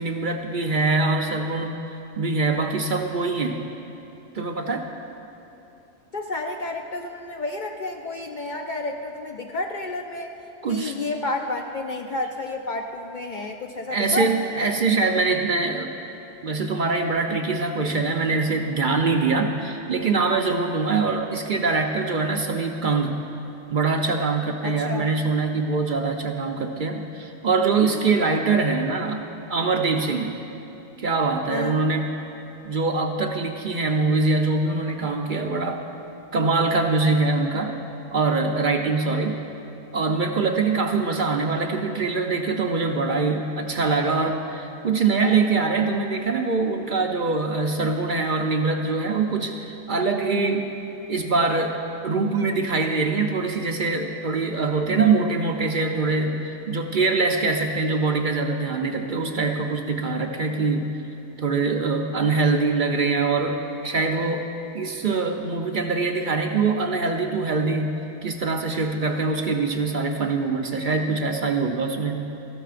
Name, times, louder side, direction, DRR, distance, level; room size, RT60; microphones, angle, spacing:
voice 1, 0.0-3.6 4.3-4.9 10.6-10.9 13.9-15.9 16.4-23.2 23.7-29.2 29.5-30.3 31.0-32.1 32.6-35.8 36.3-37.7 38.1-39.4 39.9-50.7 51.1-60.9 61.4-64.5 64.7-72.3, right 3 dB, 50° right, 3 dB, 0.7 m, -23 dB
voice 2, 6.1-10.3 10.7-14.3 24.6-25.1 31.5-31.8, left 2 dB, 55° left, 2 dB, 0.6 m, -30 dB
18.0 x 14.0 x 2.5 m, 2.9 s
omnidirectional pair, 1.2 m